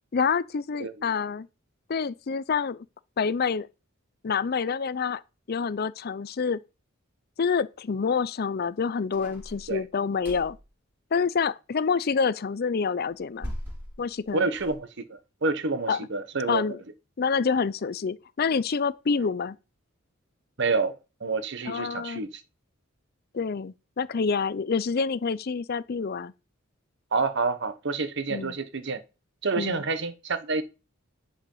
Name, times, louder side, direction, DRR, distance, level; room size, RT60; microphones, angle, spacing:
voice 1, 0.1-1.5 1.9-2.9 3.2-3.7 4.2-5.2 5.5-6.6 7.4-10.6 11.1-13.5 14.0-14.5 15.9-16.0 16.5-16.8 17.2-19.6 21.7-22.2 23.3-26.3 28.3-28.5 29.6-29.8, left 5 dB, 45° left, 0.5 m, -27 dB
sound 1, 9.1-10.7 13.1-14.8, equal, 10° right, 3.3 m, -40 dB
voice 2, 14.3-16.6 20.6-20.9 21.2-22.4 27.1-29.0 29.4-30.6, right 3 dB, 55° right, 1.0 m, -28 dB
10.0 x 4.9 x 5.4 m
head